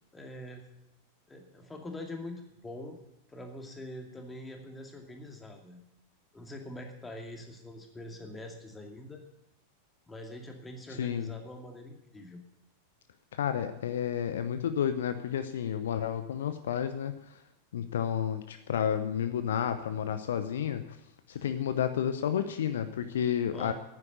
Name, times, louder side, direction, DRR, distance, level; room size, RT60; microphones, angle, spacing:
voice 1, 0.1-0.7 1.3-3.0 3.3-5.8 6.3-9.2 10.1-12.4 21.3-21.5 23.5-23.7, left 1 dB, 10° left, 3 dB, 2.3 m, -44 dB
voice 2, 11.0-11.3 13.3-17.4 17.7-21.0 21.3-23.7, left 9 dB, 60° left, 10 dB, 0.7 m, -31 dB
9.7 x 9.5 x 9.3 m, 0.87 s
figure-of-eight pair, 90°, 0 cm